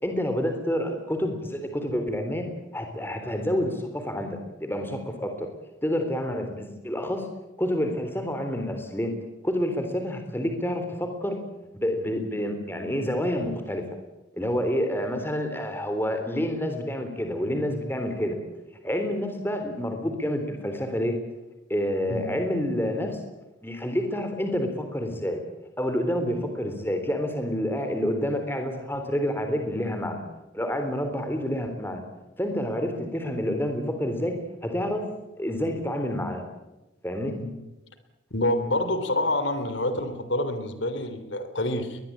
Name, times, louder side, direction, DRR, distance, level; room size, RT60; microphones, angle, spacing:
voice 1, 0.0-2.5 2.7-5.5 5.8-7.3 7.6-9.1 9.4-11.4 11.7-13.8 14.4-18.4 18.8-21.1 21.7-23.2 23.6-25.4 25.8-30.2 30.5-32.0 32.4-34.3 34.6-35.1 35.4-36.4 37.0-37.4, equal, 10° left, 6 dB, 3.6 m, -28 dB
voice 2, 38.3-42.0, left 1 dB, 70° left, 10 dB, 3.3 m, -27 dB
22.0 x 21.0 x 8.7 m, 1.0 s
head